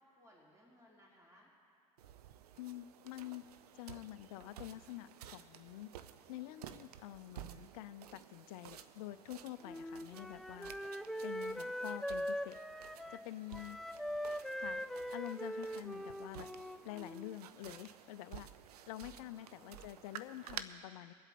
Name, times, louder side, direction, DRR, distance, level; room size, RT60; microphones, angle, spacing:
voice 1, 0.0-1.5 11.0-11.4 13.5-13.7 19.0-19.9, equal, 15° right, -3 dB, 3.0 m, -65 dB
sound 1, 2.0-20.6, right 10 dB, 75° right, 0.6 m, -53 dB
voice 2, 2.6-3.5 3.7-5.9 6.3-10.7 11.2-12.6 13.1-13.8 14.6-14.8 15.1-16.5 16.8-18.5 18.9-21.1, left 15 dB, 65° left, 15 dB, 0.4 m, -47 dB
Wind instrument woodwind instrument, 9.6-17.4, equal, ahead, 0.4 m, -42 dB
23.5 x 8.0 x 4.2 m, 2.4 s
hypercardioid pair, 70°, 20 cm